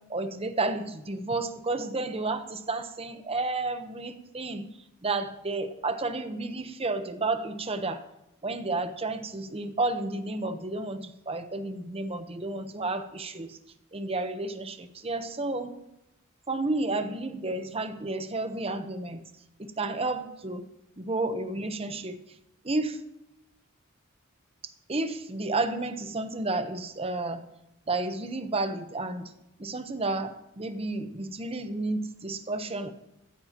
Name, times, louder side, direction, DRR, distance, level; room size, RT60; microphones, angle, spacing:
voice 1, 0.0-4.7 5.0-8.0 8.4-13.6 13.9-15.7 16.5-19.2 19.6-20.6 21.0-22.2 22.6-23.0 24.9-27.5 27.9-29.3 29.6-32.9, right 2 dB, 25° right, 9 dB, 0.9 m, -31 dB
15.0 x 14.0 x 2.9 m, 0.87 s
head